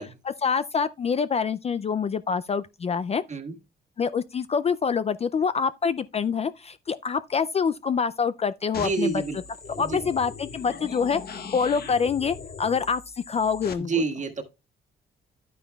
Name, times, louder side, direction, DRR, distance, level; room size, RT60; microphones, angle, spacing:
voice 1, 0.2-3.2 4.0-9.1 9.8-13.9, left 6 dB, 30° left, 0.4 m, -26 dB
sound 1, 8.7-13.7, left 5 dB, 50° left, 1.3 m, -40 dB
voice 2, 8.8-9.4 9.7-10.0 13.8-14.4, right 4 dB, 40° right, 1.6 m, -28 dB
10.5 x 9.2 x 2.3 m
cardioid pair, 90°, 20 cm